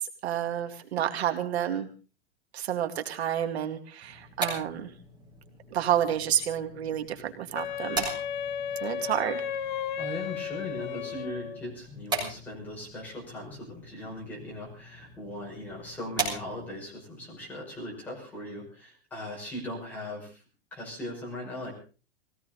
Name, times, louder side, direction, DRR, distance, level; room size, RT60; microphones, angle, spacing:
voice 1, 0.0-1.9 2.5-4.9 5.7-8.1 8.8-9.4, right 10 dB, 85° right, 6 dB, 2.3 m, -30 dB
sound 1, 4.0-16.9, right 3 dB, 15° right, 4.3 m, -39 dB
Wind instrument woodwind instrument, 7.5-11.6, left 8 dB, 50° left, 0.9 m, -34 dB
voice 2, 10.0-20.4 20.7-21.7, left 1 dB, 5° left, -5 dB, 6.0 m, -39 dB
21.0 x 17.0 x 3.9 m, 0.36 s
supercardioid pair, 180°, 31 cm